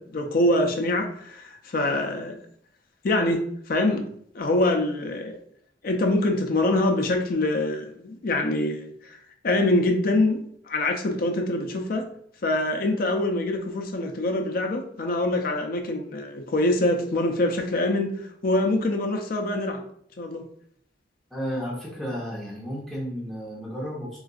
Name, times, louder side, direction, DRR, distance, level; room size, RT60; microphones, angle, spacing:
voice 1, 0.0-2.4 3.0-3.4 3.7-5.4 5.8-9.2 9.4-12.1 12.4-18.1 18.4-19.8 20.2-20.4, left 1 dB, 55° left, 0.5 m, -24 dB
voice 2, 21.3-24.2, equal, ahead, 0.8 m, -32 dB
3.8 x 2.5 x 2.4 m
head